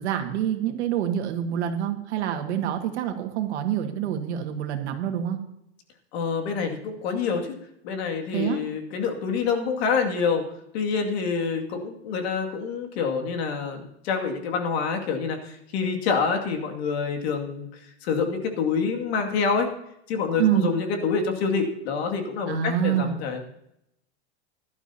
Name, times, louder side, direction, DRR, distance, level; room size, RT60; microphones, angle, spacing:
voice 1, 0.0-5.4 8.3-8.6 20.4-20.7 22.5-23.2, right 10 dB, 80° right, 5 dB, 1.9 m, -26 dB
voice 2, 6.1-7.5 7.8-10.4 10.7-17.7 18.0-19.7 20.1-23.4, left 5 dB, 65° left, 3 dB, 2.4 m, -27 dB
17.0 x 12.0 x 2.9 m, 0.80 s
supercardioid pair, 155°, 34 cm